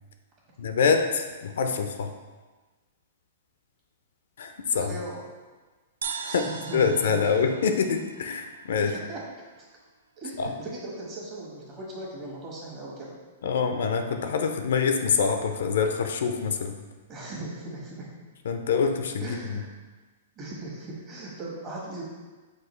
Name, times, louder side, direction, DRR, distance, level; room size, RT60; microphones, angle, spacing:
voice 1, 0.6-2.1 4.4-4.9 6.2-6.5 6.7-9.0 10.4-10.5 13.4-16.7 18.5-19.6, left 5 dB, 75° left, 6 dB, 0.4 m, -25 dB
voice 2, 4.7-5.3 6.2-7.2 8.9-9.2 9.6-9.7 10.2-13.2 17.1-18.1 19.2-19.7 20.4-22.0, right 2 dB, 35° right, -4 dB, 1.3 m, -38 dB
sound 1, 6.0-9.5, right 6 dB, 80° right, 0.3 m, -40 dB
5.9 x 2.4 x 3.1 m, 1.3 s
hypercardioid pair, 125°, 0 cm